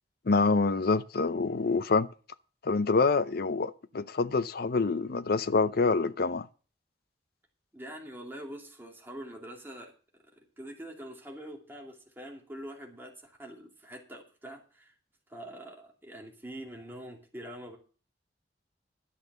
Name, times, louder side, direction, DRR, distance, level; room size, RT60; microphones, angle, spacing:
voice 1, 0.3-2.1 2.6-6.5, left 4 dB, 60° left, 0.6 m, -26 dB
voice 2, 7.7-9.9 10.3-14.9 15.3-17.8, right 1 dB, 15° right, 2.6 m, -44 dB
11.0 x 8.0 x 6.8 m
head